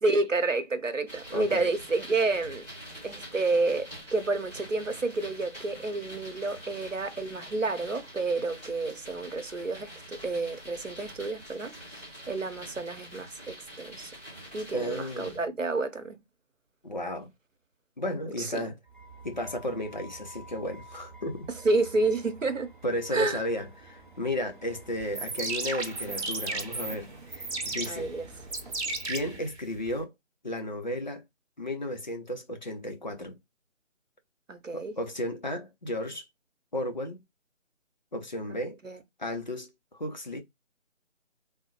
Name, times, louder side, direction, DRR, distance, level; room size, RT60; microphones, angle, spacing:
voice 1, 0.0-2.7 3.0-14.1 14.5-16.2 18.4-18.6 21.6-22.7 23.1-23.4 27.9-28.3 34.5-34.9 38.5-38.6 38.8-39.0, right 3 dB, 90° right, 0.8 m, -30 dB
sound 1, 1.1-15.4, equal, 10° left, 1.3 m, -46 dB
voice 2, 1.3-1.7 14.7-15.4 16.8-17.3 18.0-18.8 19.2-21.5 22.8-28.1 29.0-30.1 30.4-31.2 31.6-33.4 34.7-36.2 36.7-37.2 38.1-38.8 39.2-40.4, left 1 dB, 40° left, 0.6 m, -34 dB
sound 2, 18.9-29.4, right 2 dB, 40° right, 0.5 m, -50 dB
sound 3, 25.0-30.0, right 3 dB, 60° right, 0.9 m, -35 dB
3.4 x 2.0 x 3.0 m
figure-of-eight pair, 155°, 37 cm